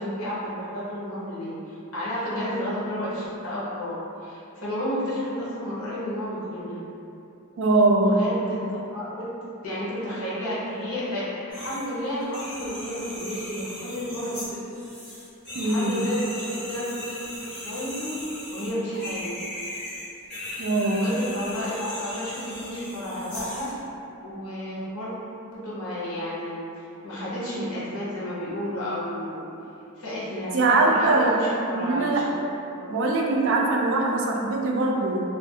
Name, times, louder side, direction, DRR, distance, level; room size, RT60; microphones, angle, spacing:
voice 1, 0.0-3.9 4.2-6.8 8.0-9.3 9.6-14.6 15.6-18.2 18.5-19.3 20.8-23.7 24.2-25.1 25.5-29.5 30.0-33.0, equal, 70° left, -8 dB, 0.8 m, -32 dB
voice 2, 7.6-8.2 15.6-16.0 20.6-21.0 30.5-31.4 31.7-32.2 32.9-35.2, right 2 dB, 60° right, 0 dB, 0.3 m, -22 dB
sound 1, 11.5-11.9 12.2-23.8, left 1 dB, 5° left, 1.1 m, -38 dB
2.4 x 2.3 x 2.6 m, 2.8 s
head